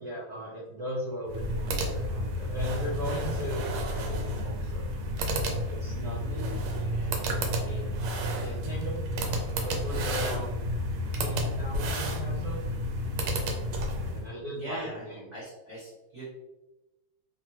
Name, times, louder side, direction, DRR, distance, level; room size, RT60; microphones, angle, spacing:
voice 1, 0.0-4.8 5.6-8.0 8.4-9.0 9.3-10.6 11.2-12.6 14.0-15.3, equal, 65° right, -6 dB, 1.0 m, -38 dB
sound 1, 1.3-14.3, equal, 80° right, 1.5 m, -31 dB
voice 2, 6.2-7.1 14.6-15.1 15.3-16.3, equal, 45° right, -9 dB, 1.1 m, -41 dB
3.5 x 2.1 x 2.8 m, 1.0 s
omnidirectional pair, 2.3 m